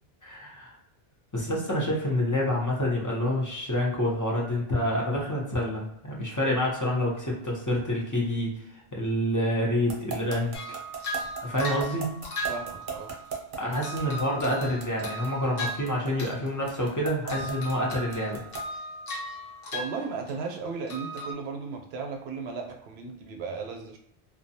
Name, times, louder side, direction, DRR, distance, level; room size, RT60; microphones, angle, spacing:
voice 1, 0.2-0.7 1.3-10.5 11.4-12.1 13.6-18.4, left 1 dB, 25° left, -3 dB, 0.5 m, -28 dB
sound 1, 9.9-18.8, right 5 dB, 60° right, 0.8 m, -36 dB
sound 2, 10.5-13.4 13.8-16.5 16.7-17.0 17.3-20.6 20.9-21.3, equal, 65° left, 0.9 m, -37 dB
voice 2, 12.5-13.1 19.7-24.0, right 4 dB, 85° right, 3 dB, 0.8 m, -35 dB
2.5 x 2.1 x 2.7 m, 0.76 s
omnidirectional pair, 1.0 m